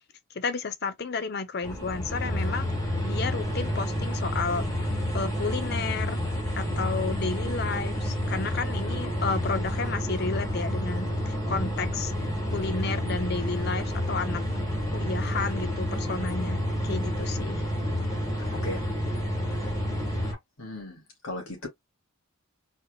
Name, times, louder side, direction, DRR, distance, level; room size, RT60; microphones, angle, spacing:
voice 1, 0.3-6.2 6.6-12.1 12.5-14.4 14.9-17.6, left 4 dB, 45° left, 0.6 m, -32 dB
sound 1, 1.6-20.3, equal, 15° left, 1.4 m, -29 dB
voice 2, 18.5-18.8 20.6-21.7, left 1 dB, 70° left, 2.1 m, -37 dB
4.2 x 3.4 x 2.3 m
head